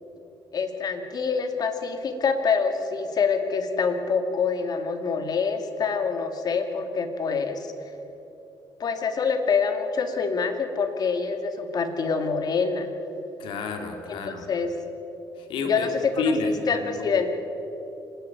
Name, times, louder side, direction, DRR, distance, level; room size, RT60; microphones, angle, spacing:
voice 1, 0.5-7.7 8.8-12.9 14.1-14.7 15.6-16.3 16.7-17.3, left 5 dB, 50° left, 7 dB, 2.3 m, -26 dB
voice 2, 13.4-14.5 15.4-15.9 16.2-16.8, left 4 dB, 80° left, 5 dB, 2.7 m, -29 dB
26.0 x 10.5 x 9.3 m, 3.0 s
cardioid pair, 85°, 8 cm